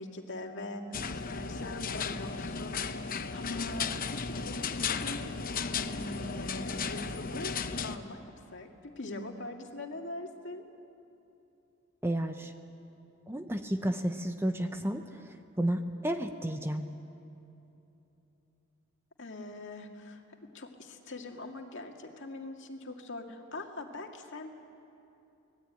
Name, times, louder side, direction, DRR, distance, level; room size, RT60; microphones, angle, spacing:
voice 1, 0.0-5.3 5.7-8.2 8.5-8.7 9.0-10.6 19.2-20.2 20.5-24.5, left 2 dB, 60° left, 3 dB, 2.1 m, -42 dB
sound 1, 0.9-8.0, left 5 dB, 40° left, 0.8 m, -35 dB
voice 2, 12.0-12.5 13.3-15.2 15.6-16.9, right 1 dB, 10° right, 7 dB, 0.8 m, -31 dB
24.5 x 19.0 x 9.1 m, 2.9 s
head